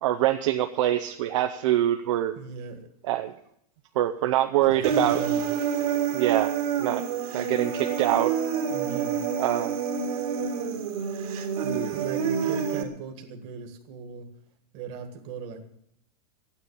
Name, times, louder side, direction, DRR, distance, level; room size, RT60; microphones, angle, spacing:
voice 1, 0.0-2.3 3.0-3.3 3.9-5.2 6.1-7.0 7.3-8.3 9.4-9.7 11.6-11.9, right 13 dB, 50° right, 6 dB, 0.8 m, -25 dB
voice 2, 2.3-2.8 4.6-5.4 8.7-9.2 11.9-14.3 14.7-15.7, right 5 dB, 30° right, 6 dB, 1.7 m, -38 dB
Human voice, 4.8-12.8, right 7 dB, 70° right, 2.5 m, -28 dB
13.0 x 9.6 x 8.6 m, 0.74 s
supercardioid pair, 180°, 20 cm